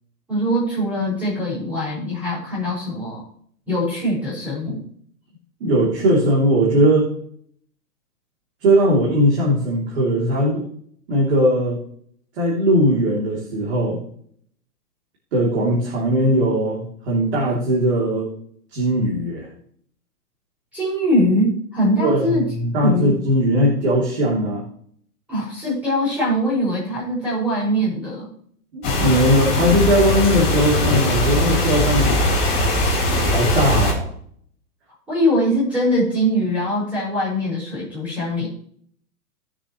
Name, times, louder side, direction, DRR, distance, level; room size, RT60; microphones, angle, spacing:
voice 1, 0.3-3.2 3.7-4.8 20.7-22.4 22.8-23.1 25.3-28.3 35.1-38.5, equal, 5° right, -9 dB, 5.8 m, -22 dB
voice 2, 5.6-7.1 8.6-10.7 11.1-11.8 12.4-14.0 15.3-18.3 18.7-19.5 22.0-24.6 28.7-32.2 33.2-34.1, equal, 45° right, -4 dB, 3.4 m, -19 dB
sound 1, 28.8-33.9, left 1 dB, 15° left, 3.9 m, -20 dB
18.0 x 7.0 x 3.2 m, 0.62 s
hypercardioid pair, 175°, 47 cm